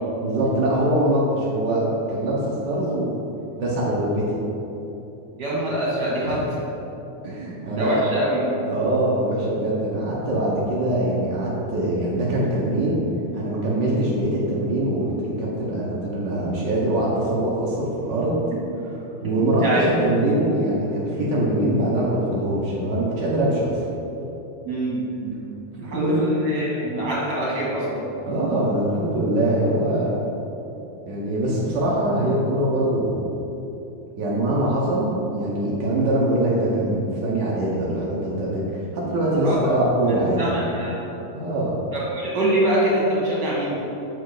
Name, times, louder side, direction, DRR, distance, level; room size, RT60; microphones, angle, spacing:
voice 1, 0.2-3.2 3.6-4.2 6.2-6.4 7.2-8.0 8.6-13.0 13.3-18.3 19.2-23.8 25.9-26.2 28.2-30.1 31.0-33.2 34.2-40.4 41.3-41.8, right 1 dB, 65° right, -6 dB, 1.0 m, -23 dB
voice 2, 5.4-6.4 7.7-8.5 19.6-19.9 24.6-25.4 25.8-28.1 39.4-39.6 40.0-41.0 41.9-43.8, right 1 dB, 40° right, -6 dB, 2.2 m, -24 dB
7.2 x 5.1 x 4.8 m, 2.9 s
omnidirectional pair, 3.4 m